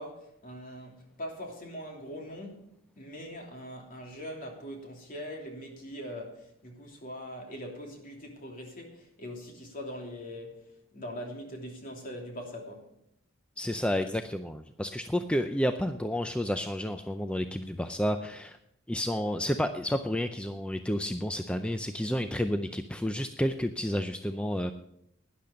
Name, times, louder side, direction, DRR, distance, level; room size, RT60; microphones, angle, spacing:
voice 1, 0.0-12.9, equal, 45° left, 3.0 m, -42 dB
voice 2, 13.6-18.6 18.9-24.7, equal, 5° left, 0.5 m, -30 dB
12.5 x 10.5 x 5.2 m
head